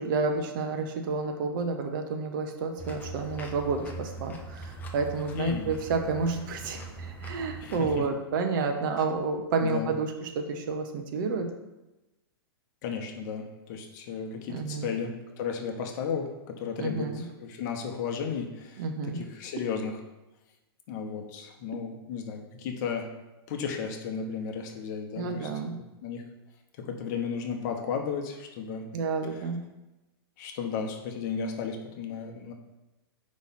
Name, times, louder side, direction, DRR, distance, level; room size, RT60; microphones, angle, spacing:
voice 1, 0.0-11.5 14.5-14.9 16.8-17.2 18.8-19.2 25.1-25.8 28.9-29.6, right 4 dB, 55° right, 5 dB, 0.8 m, -30 dB
sound 1, 2.8-8.0, right 3 dB, 15° left, 0.6 m, -41 dB
voice 2, 5.3-5.7 7.6-8.0 9.6-9.9 12.8-20.0 20.9-23.1 23.5-25.5 26.0-26.2 26.8-28.9 29.3-29.4 30.4-32.5, left 6 dB, 45° left, 3 dB, 0.9 m, -34 dB
5.4 x 3.2 x 5.6 m, 1.0 s
hypercardioid pair, 135°, 13 cm